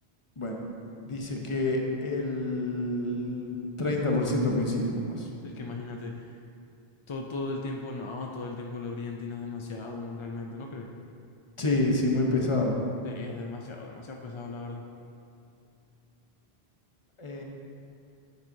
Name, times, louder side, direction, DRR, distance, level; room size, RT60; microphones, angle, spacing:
voice 1, 1.1-5.3 11.6-12.8 17.2-17.4, left 2 dB, 35° left, 0 dB, 0.8 m, -28 dB
voice 2, 5.4-6.4 7.1-10.9 13.0-14.8, left 3 dB, 50° left, 1 dB, 0.3 m, -37 dB
9.3 x 7.4 x 2.6 m, 2.5 s
omnidirectional pair, 1.1 m